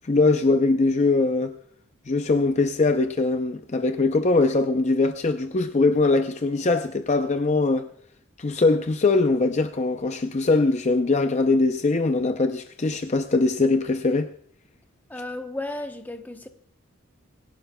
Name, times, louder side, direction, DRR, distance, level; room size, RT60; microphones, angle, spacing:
voice 1, 0.1-1.5 2.1-7.9 8.4-14.3, left 3 dB, 35° left, 0.5 m, -22 dB
voice 2, 15.1-16.5, left 1 dB, 10° left, 0.8 m, -34 dB
25.5 x 11.5 x 2.2 m
head